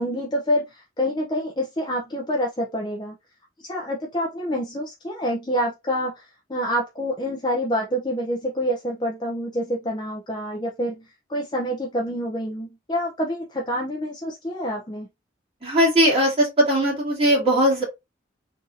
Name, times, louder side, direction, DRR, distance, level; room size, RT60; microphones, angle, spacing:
voice 1, 0.0-3.1 3.6-11.0 11.3-15.1, equal, 25° left, 0.5 m, -27 dB
voice 2, 15.6-17.8, equal, 30° right, 2.0 m, -19 dB
3.9 x 2.7 x 2.5 m
head